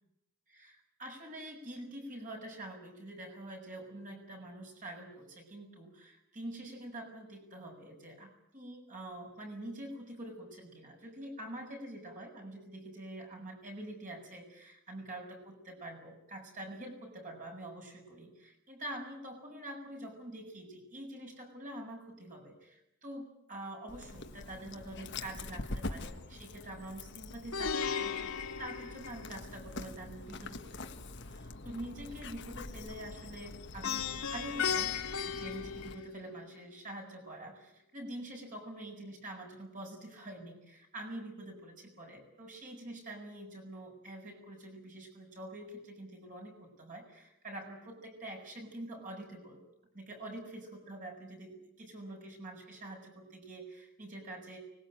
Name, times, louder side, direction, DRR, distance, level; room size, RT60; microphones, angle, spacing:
voice 1, 0.5-34.9 35.3-49.6 49.9-54.6, right 1 dB, 35° right, 2 dB, 7.1 m, -46 dB
Dog, 23.9-35.9, left 2 dB, 55° left, 1.5 m, -45 dB
Plucked string instrument, 27.5-29.7 33.8-36.4, left 6 dB, 90° left, 2.3 m, -36 dB
24.5 x 20.5 x 9.1 m, 0.83 s
head